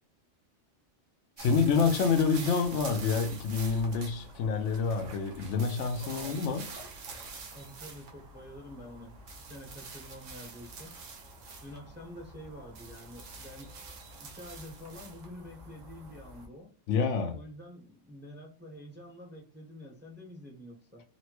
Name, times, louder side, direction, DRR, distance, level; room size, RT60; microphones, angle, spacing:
voice 1, 1.4-6.6 16.9-17.4, left 5 dB, 75° left, 0.9 m, -27 dB
sound 1, 1.4-16.5, right 3 dB, 80° right, 1.1 m, -46 dB
voice 2, 6.0-6.6 7.5-11.0 11.6-13.7 14.2-16.7 17.3-21.0, left 1 dB, 10° right, 0.6 m, -47 dB
4.0 x 2.1 x 2.9 m
omnidirectional pair, 1.3 m